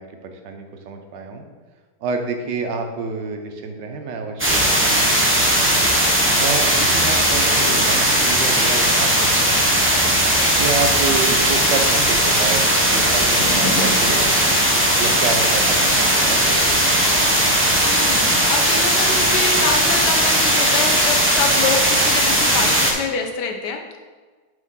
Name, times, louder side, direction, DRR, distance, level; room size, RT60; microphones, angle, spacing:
voice 1, 0.0-1.5 2.0-5.8 6.4-10.0 10.5-14.3 14.9-17.4, right 4 dB, 90° right, 5 dB, 1.4 m, -29 dB
sound 1, 4.4-22.9, right 1 dB, 15° right, 0.4 m, -17 dB
sound 2, 13.4-18.9 19.4-21.2 21.9-22.0, left 1 dB, 30° left, 0.8 m, -35 dB
voice 2, 17.8-24.0, left 5 dB, 75° left, 3 dB, 1.3 m, -26 dB
6.3 x 5.4 x 3.7 m, 1.4 s
omnidirectional pair, 1.8 m